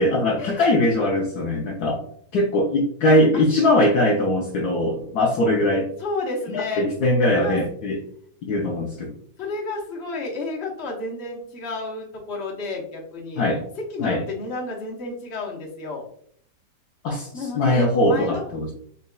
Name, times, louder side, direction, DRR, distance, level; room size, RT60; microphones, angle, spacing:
voice 1, 0.0-2.0 2.3-5.9 6.5-8.0 8.4-9.2 13.4-13.6 14.0-14.2 17.0-18.7, left 1 dB, 70° left, -1 dB, 1.0 m, -21 dB
voice 2, 6.0-6.9 7.3-7.6 9.4-13.4 13.9-16.0 17.3-18.4, left 3 dB, 40° left, -1 dB, 1.1 m, -31 dB
4.1 x 4.0 x 2.2 m, 0.63 s
omnidirectional pair, 2.0 m